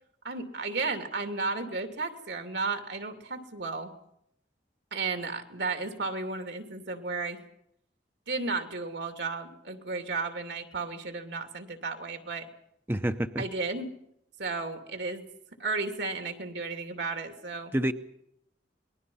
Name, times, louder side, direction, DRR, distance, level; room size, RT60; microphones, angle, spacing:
voice 1, 0.2-3.9 4.9-7.4 8.3-12.5 13.4-13.9 14.4-15.2 15.6-17.7, right 3 dB, 75° right, 5 dB, 2.8 m, -33 dB
voice 2, 12.9-13.4 17.7-17.9, right 1 dB, 15° right, 8 dB, 0.8 m, -27 dB
28.5 x 21.0 x 5.6 m, 0.77 s
head